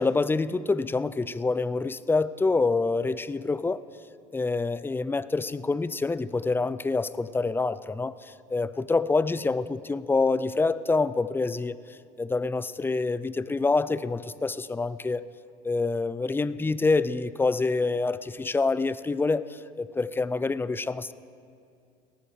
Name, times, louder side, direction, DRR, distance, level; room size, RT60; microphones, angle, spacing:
voice 1, 0.0-3.8 4.3-11.8 12.2-15.2 15.6-21.1, left 3 dB, 10° left, 16 dB, 0.3 m, -26 dB
18.0 x 14.0 x 3.3 m, 2.4 s
hypercardioid pair, 80°, 21 cm